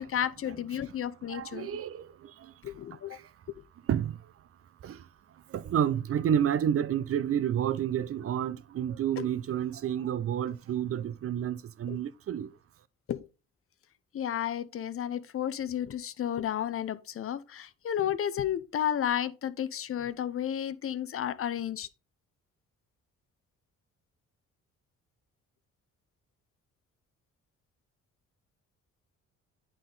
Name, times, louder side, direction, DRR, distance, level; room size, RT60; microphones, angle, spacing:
voice 1, 0.0-1.7 2.6-3.2 9.2-9.3 11.9-12.0 13.1-13.3 14.1-21.9, left 10 dB, 45° left, 0.6 m, -32 dB
voice 2, 1.3-2.5 3.1-3.3 3.9-4.2 4.8-5.1 5.5-12.5, right 9 dB, 50° right, 0.5 m, -30 dB
8.9 x 3.8 x 3.9 m
cardioid pair, 90°, 30 cm